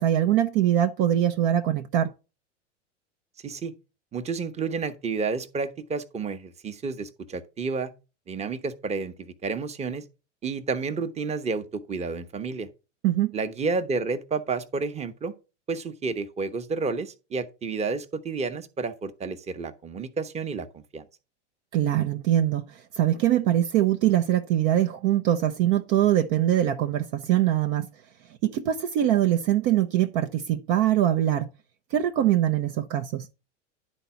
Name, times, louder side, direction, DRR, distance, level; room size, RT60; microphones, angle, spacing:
voice 1, 0.0-2.1 13.0-13.3 21.7-27.9 28.4-31.5 31.9-33.3, right 12 dB, 45° right, 0.7 m, -23 dB
voice 2, 4.1-7.9 8.3-10.0 10.4-12.7 13.3-15.3 15.7-21.1, right 4 dB, 20° right, 1.0 m, -30 dB
11.0 x 4.1 x 5.7 m
hypercardioid pair, 105°, 36 cm